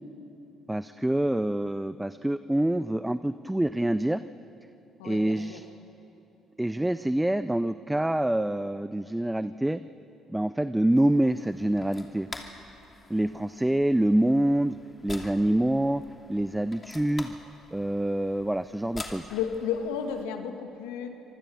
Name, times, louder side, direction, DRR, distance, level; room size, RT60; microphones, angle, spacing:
voice 1, 0.7-4.2 5.0-5.6 6.6-9.8 10.3-12.3 13.1-14.8 15.0-16.0 16.3-17.4 17.7-19.3, right 1 dB, 10° right, 13 dB, 0.6 m, -26 dB
voice 2, 5.0-5.6 19.3-21.1, left 7 dB, 85° left, 5 dB, 1.9 m, -32 dB
sound 1, 10.9-20.2, left 3 dB, 30° left, 2.7 m, -46 dB
25.5 x 19.5 x 7.1 m, 2.8 s
hypercardioid pair, 60°, 0 cm